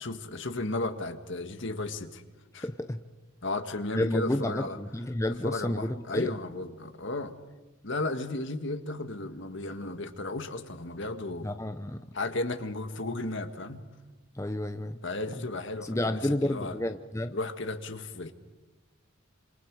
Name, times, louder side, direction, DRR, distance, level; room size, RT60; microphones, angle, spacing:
voice 1, 0.0-2.2 2.5-2.7 3.4-4.8 5.4-7.3 7.8-11.5 12.1-13.8 15.0-16.8 17.3-18.3, left 2 dB, 60° left, 8 dB, 1.8 m, -34 dB
voice 2, 2.6-3.0 3.9-6.3 11.4-12.0 14.3-15.0 15.8-17.4, left 1 dB, 15° left, 8 dB, 0.7 m, -30 dB
28.5 x 26.5 x 4.9 m, 1.2 s
head